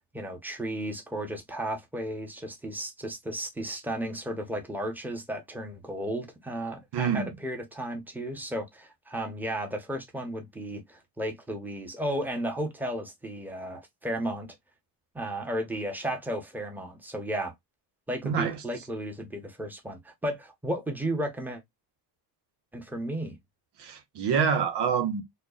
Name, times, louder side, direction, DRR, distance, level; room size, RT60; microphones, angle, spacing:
voice 1, 0.1-14.5 15.1-17.5 18.1-21.6 22.7-23.4, right 1 dB, 5° right, 1.0 m, -34 dB
voice 2, 6.9-7.3 18.2-18.6 23.8-25.2, right 6 dB, 80° right, 1.1 m, -26 dB
4.4 x 2.4 x 2.4 m
cardioid pair, 120°, 41 cm